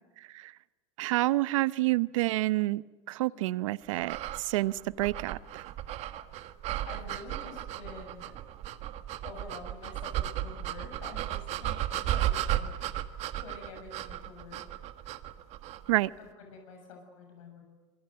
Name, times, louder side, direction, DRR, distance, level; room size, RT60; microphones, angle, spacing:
voice 1, 1.0-2.8 3.1-5.6 15.9-16.1, right 18 dB, 85° right, 17 dB, 0.8 m, -28 dB
sound 1, 4.0-15.9, right 12 dB, 45° right, 1.5 m, -35 dB
voice 2, 6.9-8.3 9.2-12.8 13.0-14.6 16.2-17.6, left 4 dB, 90° left, 3 dB, 7.1 m, -48 dB
26.5 x 23.5 x 7.8 m, 1.4 s
supercardioid pair, 140°, 16 cm